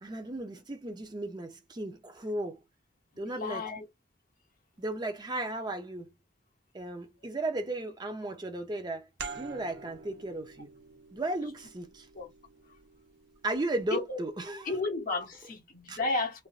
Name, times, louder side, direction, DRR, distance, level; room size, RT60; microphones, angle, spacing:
voice 1, 0.0-2.6 3.2-3.6 4.8-6.1 6.7-9.1 9.4-10.7 11.1-12.1 13.4-14.7 15.9-16.0, right 2 dB, 25° right, 0.6 m, -35 dB
voice 2, 3.2-3.9 12.1-12.3 13.9-14.2 14.6-16.5, left 3 dB, 50° left, 0.9 m, -33 dB
sound 1, 9.2-14.5, right 5 dB, 75° right, 0.6 m, -47 dB
3.3 x 2.5 x 2.4 m
head